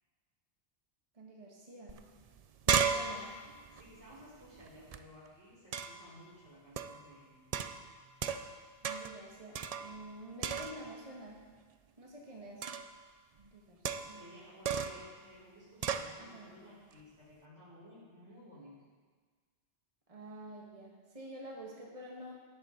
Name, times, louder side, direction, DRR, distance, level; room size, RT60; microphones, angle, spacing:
voice 1, 1.1-2.1 2.7-3.3 8.8-11.4 12.0-12.7 13.4-14.2 16.2-16.5 20.1-22.3, right 1 dB, 30° right, -2 dB, 1.6 m, -48 dB
sound 1, 1.9-2.0 2.3-5.0 5.7-6.1 6.8-7.0 7.5-8.6 8.8-9.2 9.6-10.1 10.4-11.0 12.6-13.0 13.9-14.3 14.7-15.1 15.8-16.1, right 7 dB, 55° right, 0.4 m, -35 dB
voice 2, 3.7-7.4 14.1-18.8, left 1 dB, 90° right, -8 dB, 4.5 m, -56 dB
17.5 x 8.1 x 3.9 m, 1.5 s
omnidirectional pair, 1.2 m